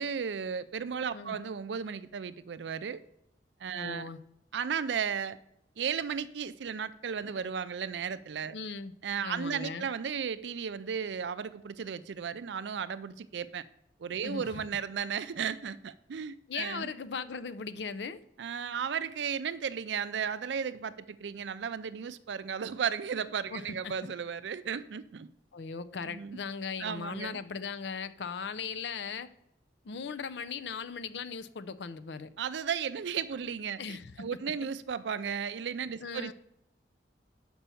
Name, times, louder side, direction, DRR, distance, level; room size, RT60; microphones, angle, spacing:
voice 1, 0.0-3.0 3.6-4.1 4.5-5.4 5.8-8.5 9.0-13.6 14.0-16.9 18.4-25.3 26.1-26.4 26.8-27.4 32.4-36.3, right 7 dB, 90° right, 0.4 m, -35 dB
voice 2, 3.7-4.2 8.5-8.9 9.2-9.9 14.2-14.6 16.5-18.2 23.5-23.9 25.5-29.3 29.8-32.3 33.8-34.3 36.0-36.3, left 5 dB, 80° left, 0.5 m, -38 dB
6.0 x 5.5 x 7.0 m
head